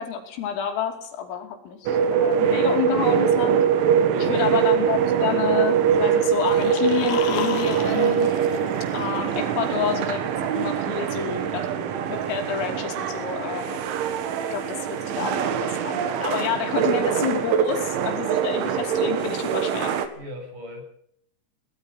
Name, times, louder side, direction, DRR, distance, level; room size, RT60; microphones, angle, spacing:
voice 1, 0.0-3.6 4.2-8.3 8.9-13.8 14.5-20.0, left 8 dB, 80° left, 5 dB, 5.5 m, -29 dB
sound 1, 1.9-20.1, right 8 dB, 70° right, 4.1 m, -23 dB
voice 2, 4.0-4.3 20.1-20.8, left 1 dB, 40° right, 3 dB, 8.0 m, -38 dB
sound 2, 6.3-9.5, left 9 dB, 60° left, 3.7 m, -34 dB
23.5 x 19.0 x 5.9 m, 0.68 s
omnidirectional pair, 5.9 m